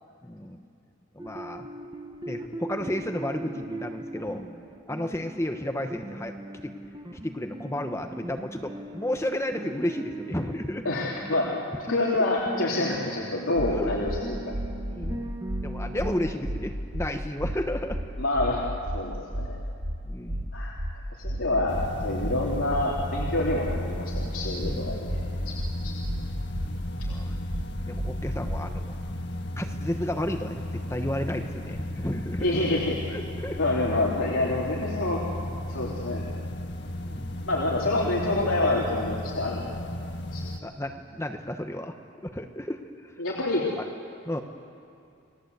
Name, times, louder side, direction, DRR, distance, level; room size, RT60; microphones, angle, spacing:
voice 1, 0.2-0.6 1.1-1.7 2.3-4.4 4.9-6.3 6.6-6.7 7.1-10.9 13.7-13.9 14.9-18.0 20.0-20.5 24.6-25.0 25.7-25.9 27.1-27.4 27.8-29.0 29.6-32.8 33.1-33.6 37.0-37.4 40.6-42.0 42.3-43.2 43.8-43.9 44.2-44.4, left 1 dB, 15° left, 5 dB, 1.0 m, -32 dB
sound 1, 1.2-16.3, right 1 dB, 20° right, 1.2 m, -39 dB
voice 2, 10.8-11.5 11.9-14.4 18.2-19.6 20.5-20.8 21.2-25.9 32.4-32.9 33.6-35.2 35.7-36.3 37.5-39.7 40.3-40.5 43.2-43.7, left 2 dB, 75° left, -5 dB, 3.3 m, -27 dB
sound 2, 13.6-13.7 14.0-14.2 14.5-14.7 15.0-15.2 15.5-15.6 16.0-16.1 16.4-16.6 16.9-17.1 17.4-17.6 17.9-18.0 18.4-18.5 18.8-19.0 19.3-19.5 19.8-20.0 20.3-20.4 20.8-20.9 21.2-21.4 21.7-21.9 22.2-22.4 22.7-22.8 23.2-23.3 23.6-23.8 24.1-24.3 24.6-24.8 25.1-25.2 25.6-25.7 26.0-26.2 26.5-26.7 27.0-27.2 27.5-27.6 28.0-28.1 28.4-28.6, right 1 dB, 90° right, 2.5 m, -31 dB
sound 3, 21.7-40.6, left 1 dB, 55° left, 1.5 m, -35 dB
30.0 x 20.5 x 8.2 m, 2.6 s
head